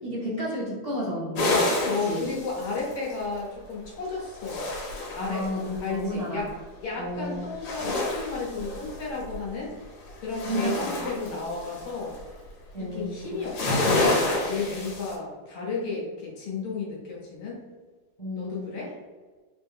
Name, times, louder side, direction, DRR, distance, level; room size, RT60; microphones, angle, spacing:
voice 1, 0.0-2.2 5.2-6.4 6.9-7.4 10.5-11.4 12.7-13.3 18.2-18.7, equal, 25° left, -9 dB, 0.9 m, -32 dB
sound 1, 1.4-3.3 4.1-5.8 7.5-9.4 9.8-12.2 13.3-15.1, left 2 dB, 90° left, 1.9 m, -28 dB
voice 2, 1.8-4.7 5.1-5.5 5.8-6.5 6.8-9.7 10.2-12.1 12.8-17.6 18.4-18.9, left 4 dB, 70° left, -4 dB, 1.8 m, -33 dB
4.2 x 2.2 x 3.5 m, 1.4 s
omnidirectional pair, 2.4 m